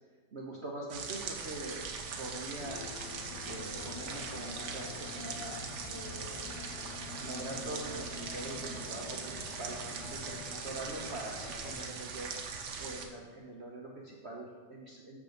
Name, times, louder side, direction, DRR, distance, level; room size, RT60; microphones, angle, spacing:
voice 1, 0.3-1.8 2.2-2.9 3.4-6.4 7.2-12.3 12.8-15.2, right 2 dB, 45° right, -2 dB, 1.1 m, -43 dB
sound 1, 0.9-13.1, right 5 dB, 70° right, 1.5 m, -41 dB
sound 2, 2.6-11.9, left 8 dB, 75° left, 1.1 m, -47 dB
7.1 x 6.7 x 6.4 m, 1.4 s
omnidirectional pair, 1.9 m